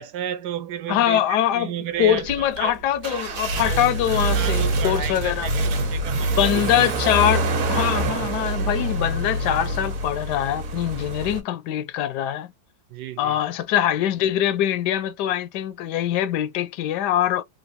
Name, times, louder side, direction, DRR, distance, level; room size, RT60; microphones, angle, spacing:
voice 1, 0.0-2.8 3.5-3.9 4.2-6.9 12.9-13.4, right 10 dB, 85° right, 1.2 m, -33 dB
voice 2, 0.9-1.7 2.0-5.5 6.4-12.5 13.2-17.4, left 11 dB, 85° left, 1.2 m, -23 dB
sound 1, 2.2-11.4, right 2 dB, 60° right, 1.2 m, -25 dB
3.4 x 2.5 x 2.6 m
omnidirectional pair, 1.8 m